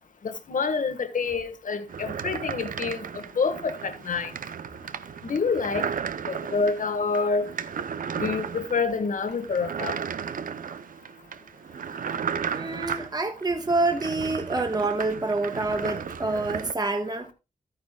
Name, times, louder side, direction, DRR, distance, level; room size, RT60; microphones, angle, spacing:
voice 1, 0.2-4.3 5.2-5.9 6.3-7.5 8.2-10.0, left 4 dB, 70° left, 1.4 m, -27 dB
sound 1, 1.9-16.7, right 7 dB, 80° right, 0.6 m, -34 dB
voice 2, 12.5-17.3, right 2 dB, 30° right, 1.2 m, -27 dB
13.5 x 9.5 x 2.2 m
wide cardioid pair, 95°, 14 cm